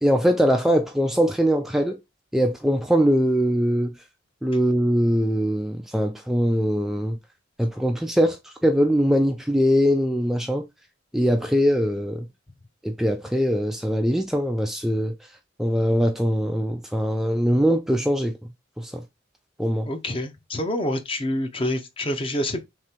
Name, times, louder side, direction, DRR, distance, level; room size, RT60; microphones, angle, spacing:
voice 1, 0.0-2.0 2.3-3.9 4.4-7.2 7.6-10.6 11.1-12.3 12.8-15.1 15.6-18.4 18.8-19.0 19.6-19.9, equal, ahead, 0.3 m, -22 dB
voice 2, 19.8-22.6, left 1 dB, 30° left, 0.7 m, -27 dB
3.6 x 3.2 x 4.4 m
head